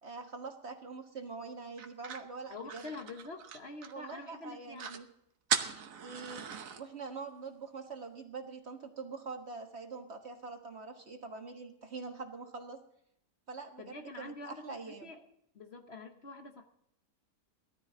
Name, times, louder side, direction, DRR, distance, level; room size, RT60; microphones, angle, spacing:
voice 1, 0.0-2.9 3.9-5.1 6.0-6.5 6.7-12.8 13.5-15.1, right 4 dB, 45° right, 5 dB, 1.5 m, -44 dB
lighting matches, 1.8-4.2 4.5-4.6 4.8-5.0 5.5-6.8, right 7 dB, 60° right, 1.3 m, -37 dB
voice 2, 2.5-5.0 13.8-15.2 15.5-16.6, left 2 dB, 45° left, 5 dB, 1.3 m, -46 dB
17.5 x 13.5 x 3.9 m, 0.74 s
omnidirectional pair, 1.7 m